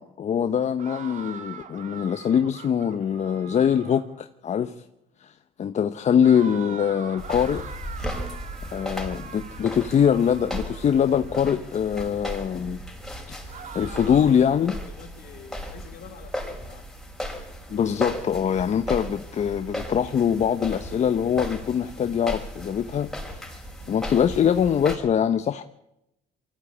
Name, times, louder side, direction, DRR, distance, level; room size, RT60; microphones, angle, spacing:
voice 1, 0.0-4.7 5.2-5.3 5.6-7.7 8.7-12.8 13.3-14.8 17.7-23.1 23.9-25.6, left 8 dB, 45° left, 1.0 m, -23 dB
sound 1, 0.8-4.2 6.2-11.5 13.5-14.5, right 6 dB, 45° right, 2.5 m, -43 dB
Walking On Wood Floor, 7.2-25.0, equal, ahead, 5.7 m, -36 dB
voice 2, 14.2-16.9, left 7 dB, 65° left, 3.4 m, -47 dB
23.5 x 15.5 x 8.5 m
cardioid pair, 110°, 17 cm